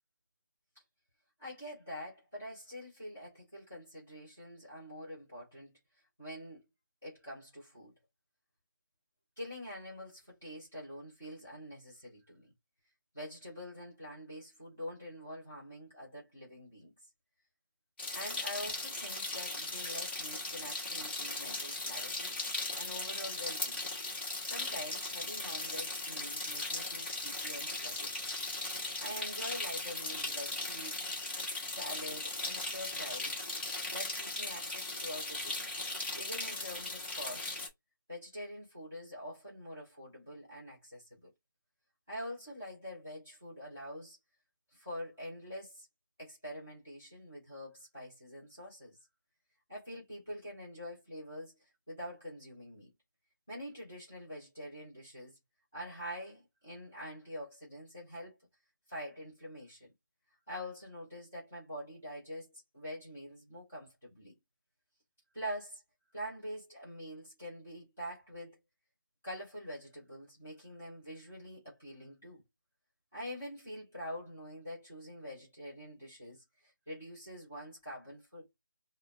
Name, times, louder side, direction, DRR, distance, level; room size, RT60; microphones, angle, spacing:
voice 1, 1.4-5.7 6.2-6.7 7.0-8.0 9.4-12.5 13.1-16.9 18.1-22.4 22.7-23.8 24.4-28.3 29.0-31.1 31.7-33.4 33.9-35.6 36.1-37.5 38.1-41.3 42.1-44.2 44.7-45.9 46.2-49.0 49.7-51.6 51.9-52.9 53.5-55.3 55.7-58.4 58.9-59.9 60.5-64.4 65.3-65.8 66.1-68.6 69.2-72.4 73.1-78.6, equal, 5° left, 0.4 m, -45 dB
sound 1, 18.0-37.7, left 2 dB, 30° left, 1.5 m, -38 dB
5.7 x 2.1 x 2.3 m
figure-of-eight pair, 175°, 11 cm